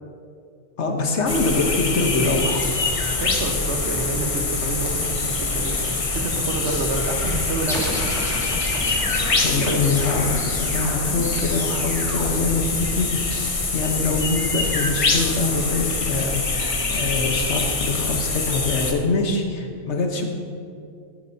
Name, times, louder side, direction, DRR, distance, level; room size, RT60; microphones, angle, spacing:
voice 1, 0.8-2.7 9.4-20.2, left 3 dB, 75° left, 3 dB, 1.3 m, -24 dB
sound 1, 1.3-18.9, left 3 dB, 35° left, 0.7 m, -24 dB
voice 2, 3.2-7.8 9.7-9.8, right 3 dB, 75° right, 2 dB, 1.4 m, -28 dB
sound 2, 7.7-13.1, equal, 5° left, 2.0 m, -33 dB
13.0 x 9.6 x 2.7 m, 2.4 s
omnidirectional pair, 1.2 m